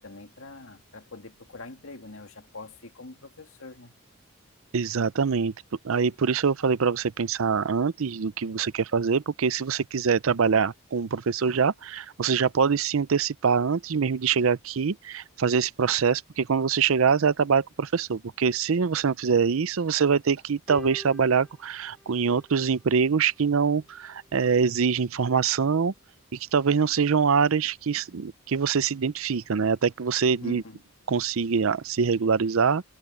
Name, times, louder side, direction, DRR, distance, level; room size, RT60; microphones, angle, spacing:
voice 1, 0.0-3.9 30.4-30.8, left 2 dB, 65° left, 2.3 m, -44 dB
voice 2, 4.7-5.5 5.8-25.9 26.3-30.6 31.1-32.8, right 6 dB, 70° right, 0.5 m, -24 dB
sound 1, 20.7-23.2 24.2-24.3, equal, ahead, 3.2 m, -46 dB
head